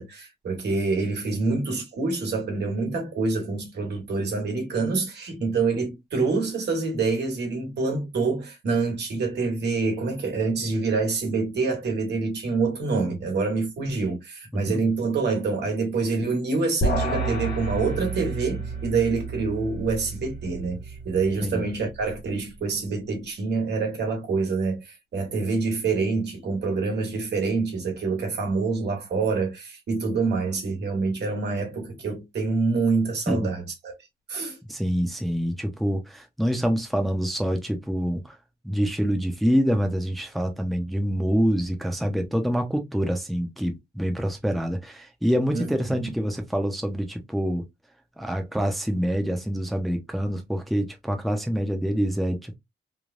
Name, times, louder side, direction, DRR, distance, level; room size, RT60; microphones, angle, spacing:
voice 1, 0.0-33.9 34.3-34.6 45.5-46.1, right 4 dB, 85° right, 1.3 m, -26 dB
sound 1, 16.8-22.3, right 2 dB, 70° left, 1.1 m, -30 dB
voice 2, 34.7-38.4 38.6-47.6 48.2-52.6, equal, ahead, 0.5 m, -26 dB
3.1 x 2.2 x 2.4 m
wide cardioid pair, 155°, 17 cm